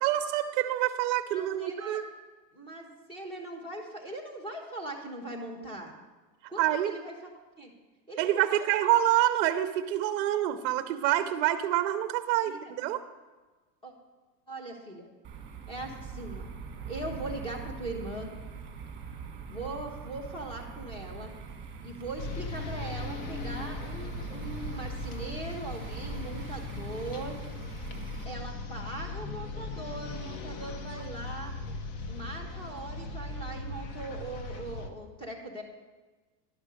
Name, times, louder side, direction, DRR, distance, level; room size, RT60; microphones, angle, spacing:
voice 1, 0.0-2.0 6.6-6.9 8.2-13.0, right 13 dB, 50° right, 10 dB, 0.6 m, -27 dB
voice 2, 1.3-2.0 2.5-5.9 6.5-7.1 7.6-7.7 8.1-8.9 12.5-12.6 13.8-13.9 14.5-15.1 15.7-16.5 16.9-18.3 19.5-21.3 21.8-27.4 28.2-31.5 32.1-35.6, right 2 dB, 10° left, 0 dB, 1.1 m, -40 dB
sound 1, 15.2-28.3, right 5 dB, 20° right, 1.5 m, -42 dB
sound 2, 22.2-34.9, left 3 dB, 40° left, 0.8 m, -38 dB
11.0 x 5.4 x 6.2 m, 1.3 s
supercardioid pair, 155°, 50 cm